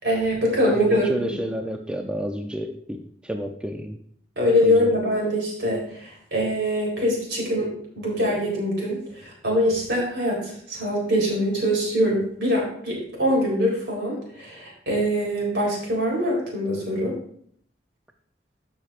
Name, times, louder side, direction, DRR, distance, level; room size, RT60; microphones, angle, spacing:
voice 1, 0.0-1.5 4.4-17.1, equal, 70° right, -2 dB, 3.7 m, -23 dB
voice 2, 0.7-4.0 4.6-4.9, equal, 5° right, 3 dB, 0.5 m, -31 dB
13.0 x 5.9 x 2.5 m, 0.62 s
head